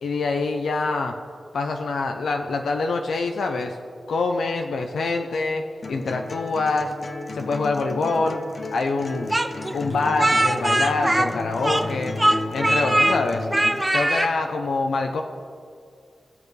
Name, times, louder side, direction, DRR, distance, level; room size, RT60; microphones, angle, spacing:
voice 1, 0.0-1.1 1.5-3.8 4.1-5.6 5.9-6.9 7.3-8.4 8.7-9.4 9.7-12.1 12.5-13.5 13.9-15.2, left 3 dB, 85° left, 4 dB, 0.6 m, -25 dB
sound 1, 5.8-13.8, left 2 dB, 50° left, 0.8 m, -33 dB
Speech, 9.3-11.9 12.2-13.2 13.5-14.3, right 1 dB, 20° right, 0.8 m, -21 dB
18.5 x 6.7 x 3.2 m, 2.2 s
cardioid pair, 65°, 0 cm